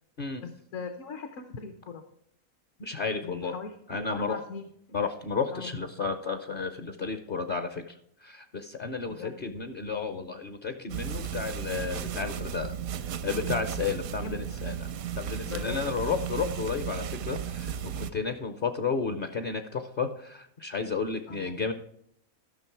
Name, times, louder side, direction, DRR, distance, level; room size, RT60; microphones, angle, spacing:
voice 1, 0.4-2.0 3.2-4.7 5.5-5.7 9.1-9.3 14.2-14.4 15.4-16.1 21.3-21.5, left 5 dB, 65° left, 7 dB, 1.1 m, -40 dB
voice 2, 2.8-3.5 3.9-4.4 4.9-12.8 13.2-14.9 15.2-21.7, left 5 dB, 50° left, 9 dB, 0.7 m, -32 dB
sound 1, 10.9-18.1, right 9 dB, 80° right, 1.1 m, -35 dB
13.0 x 6.3 x 4.5 m, 0.74 s
omnidirectional pair, 1.4 m